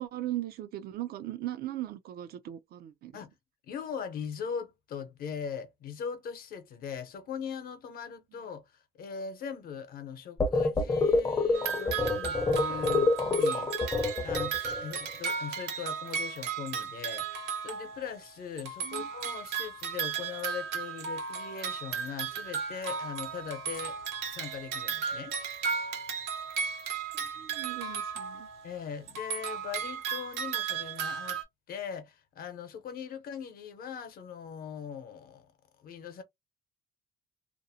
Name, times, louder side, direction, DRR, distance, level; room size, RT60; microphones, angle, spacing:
voice 1, 0.0-3.1 18.8-19.1 27.4-28.5, right 14 dB, 65° right, 0.5 m, -38 dB
voice 2, 3.7-8.6 9.0-13.7 14.2-24.0 24.3-25.3 28.6-31.4 31.7-35.5 35.8-36.2, left 7 dB, 60° left, 0.8 m, -40 dB
sound 1, 10.4-14.8, left 3 dB, 20° left, 0.6 m, -27 dB
sound 2, 11.5-18.3 18.6-28.8 29.1-31.4, right 7 dB, 85° right, 1.0 m, -35 dB
2.6 x 2.0 x 2.7 m
cardioid pair, 110°, 17 cm